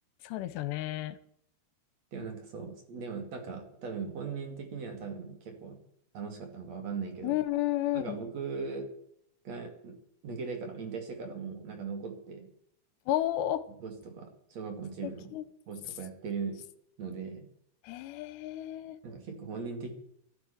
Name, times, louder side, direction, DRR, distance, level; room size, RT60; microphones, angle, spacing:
voice 1, 0.2-1.2 7.2-8.2 13.1-13.6 15.0-15.4 17.8-19.0, left 14 dB, 80° left, 2.9 m, -32 dB
voice 2, 2.1-5.8 6.1-7.4 7.9-8.9 9.4-9.9 10.2-12.5 13.8-15.3 15.7-16.6 17.0-17.4 19.0-19.9, right 5 dB, 45° right, 3.0 m, -39 dB
13.0 x 9.0 x 9.3 m
omnidirectional pair, 5.1 m